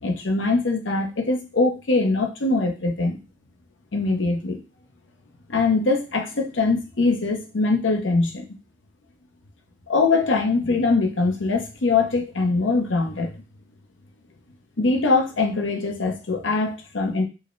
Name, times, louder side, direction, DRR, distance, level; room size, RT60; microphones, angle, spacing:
voice 1, 0.0-3.2 3.9-4.6 5.5-8.5 9.9-13.3 14.8-17.2, left 3 dB, 90° left, 4 dB, 0.7 m, -22 dB
4.6 x 2.1 x 3.1 m, 0.30 s
head